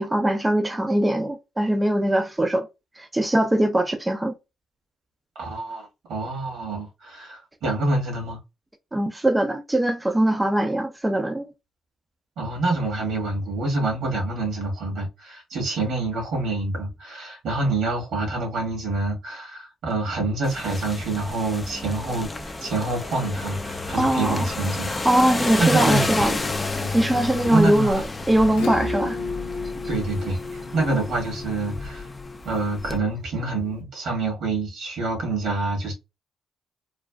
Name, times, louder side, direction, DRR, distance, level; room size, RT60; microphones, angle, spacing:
voice 1, 0.0-2.7 3.0-4.3 8.9-11.5 23.9-24.4 24.9-26.3 26.9-29.2, right 1 dB, 15° right, 0.6 m, -21 dB
voice 2, 5.3-8.4 12.4-24.9 25.6-26.2 26.8-27.0 27.4-28.0 29.9-32.1 32.4-35.9, right 2 dB, 75° right, 1.6 m, -27 dB
sound 1, 20.4-33.0, left 3 dB, 30° left, 0.5 m, -31 dB
Acoustic guitar / Strum, 28.5-33.5, left 4 dB, 85° left, 0.8 m, -33 dB
3.2 x 2.4 x 2.3 m
supercardioid pair, 55°, 0 cm